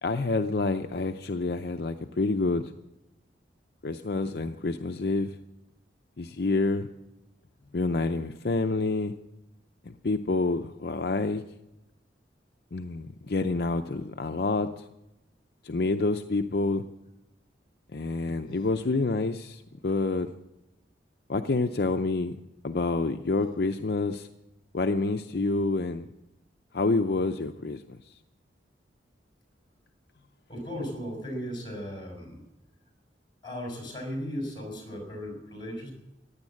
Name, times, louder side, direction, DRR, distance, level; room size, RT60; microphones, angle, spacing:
voice 1, 0.0-2.7 3.8-5.3 6.2-6.9 7.7-9.2 9.8-11.4 12.7-14.9 15.6-16.8 17.9-20.3 21.3-22.4 22.6-24.3 24.7-26.1 26.7-28.1, left 3 dB, 60° left, 6 dB, 0.6 m, -28 dB
voice 2, 30.5-32.4 33.4-35.9, equal, 25° left, 1 dB, 6.1 m, -36 dB
15.5 x 11.0 x 8.6 m, 0.93 s
head